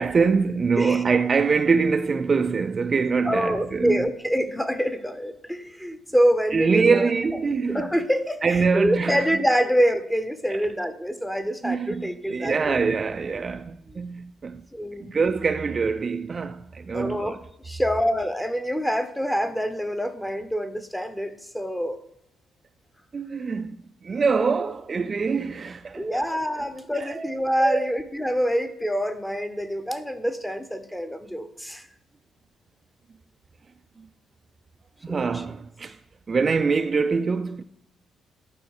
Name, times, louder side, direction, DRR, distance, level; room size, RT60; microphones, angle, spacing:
voice 1, 0.0-4.0 6.5-7.9 8.4-9.3 10.5-10.6 11.6-14.7 15.0-17.4 23.1-23.8 24.0-26.3 26.9-27.9 35.0-36.0 36.3-37.6, right 5 dB, 35° right, 0.4 m, -24 dB
voice 2, 3.2-7.4 7.7-12.9 13.9-14.0 14.7-15.2 16.9-22.0 26.0-31.9 35.1-35.5, equal, 5° left, 0.9 m, -26 dB
11.5 x 4.6 x 4.8 m
cardioid pair, 90°, 0 cm